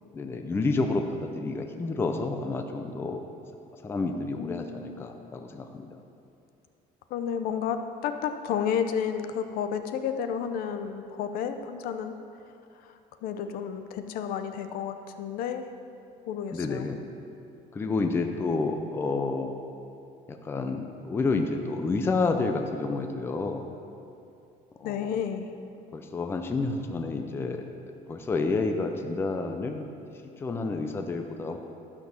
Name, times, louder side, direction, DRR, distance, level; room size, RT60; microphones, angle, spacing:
voice 1, 0.1-3.2 3.8-5.9 16.5-17.0 17.7-19.5 20.3-23.7 24.8-25.0 25.9-27.7 28.1-29.9 30.4-31.6, left 3 dB, 15° left, 5 dB, 0.5 m, -29 dB
voice 2, 4.3-5.1 7.1-12.1 12.8-15.7 16.3-16.9 24.8-25.5, left 7 dB, 65° left, 8 dB, 0.7 m, -31 dB
12.5 x 6.1 x 7.1 m, 2.6 s
cardioid pair, 175°, 16 cm